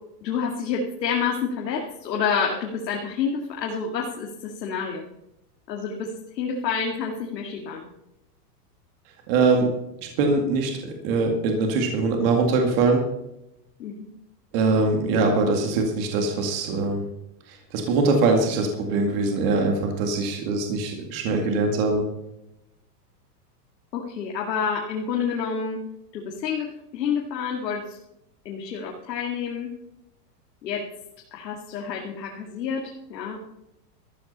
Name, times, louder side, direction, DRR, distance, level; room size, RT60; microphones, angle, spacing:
voice 1, 0.2-5.1 5.7-7.9 13.8-14.1 23.9-25.8 26.1-28.0 28.4-29.7 30.6-30.8 31.3-33.4, left 6 dB, 85° left, 0 dB, 2.6 m, -28 dB
voice 2, 9.3-9.7 10.2-13.0 14.5-17.0 17.5-22.0, right 3 dB, 35° right, 2 dB, 2.1 m, -22 dB
14.0 x 14.0 x 4.2 m, 0.85 s
supercardioid pair, 175°, 49 cm